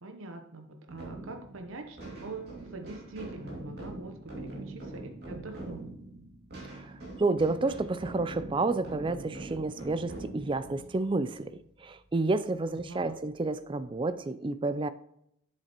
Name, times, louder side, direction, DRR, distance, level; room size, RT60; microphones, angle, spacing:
voice 1, 0.0-5.9 12.7-13.2, right 2 dB, 65° right, 0.8 m, -44 dB
sound 1, 0.9-12.3, right 2 dB, 45° right, 2.3 m, -43 dB
voice 2, 7.2-14.9, right 3 dB, 20° right, 0.3 m, -30 dB
7.8 x 7.3 x 2.9 m
head